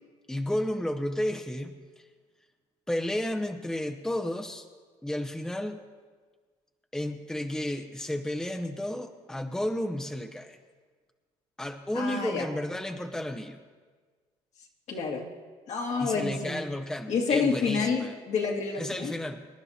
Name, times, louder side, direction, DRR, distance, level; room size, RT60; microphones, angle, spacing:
voice 1, 0.3-1.8 2.9-4.7 5.0-5.8 6.9-10.6 11.6-13.6 16.0-18.2 18.8-19.5, left 1 dB, 5° left, 7 dB, 0.7 m, -32 dB
voice 2, 11.9-12.5 14.9-15.3 15.7-16.6 17.1-19.1, left 5 dB, 65° left, -1 dB, 2.1 m, -28 dB
24.5 x 10.5 x 2.8 m, 1.5 s
supercardioid pair, 80°, 13 cm